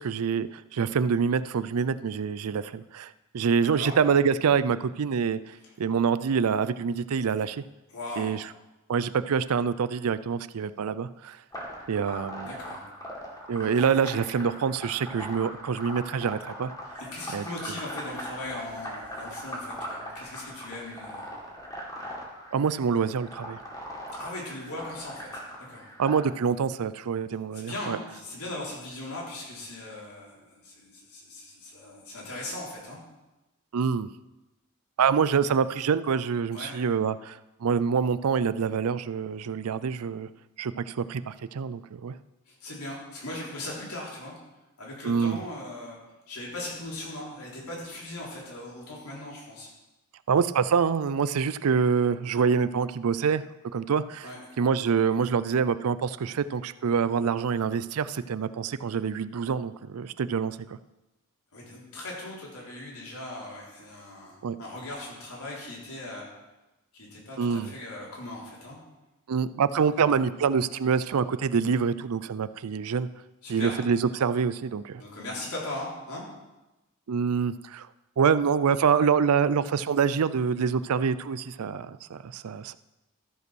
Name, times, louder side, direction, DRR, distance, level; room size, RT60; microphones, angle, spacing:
voice 1, 0.0-5.4 5.8-7.6 8.2-8.4 8.9-11.4 11.9-12.5 13.5-16.7 17.3-17.4 22.5-23.6 26.0-28.0 33.7-34.1 35.0-40.3 40.6-42.1 45.0-45.4 50.3-53.4 53.7-54.3 54.6-60.8 64.4-64.6 67.4-67.7 69.3-73.1 73.5-75.0 77.1-77.9 78.2-82.8, right 6 dB, 80° right, 15 dB, 0.4 m, -26 dB
voice 2, 3.6-4.0 5.6-5.7 7.9-8.4 12.4-12.8 14.0-14.1 17.0-21.3 24.1-25.9 27.5-33.0 36.5-36.8 42.5-44.3 44.8-46.0 46.3-49.7 54.2-54.5 61.5-66.3 66.9-68.8 70.0-70.1 73.4-73.7 75.0-76.2, left 1 dB, 90° left, -4 dB, 3.6 m, -39 dB
sound 1, 11.5-26.2, equal, 15° left, 2.1 m, -40 dB
13.5 x 5.4 x 6.2 m, 1.0 s
head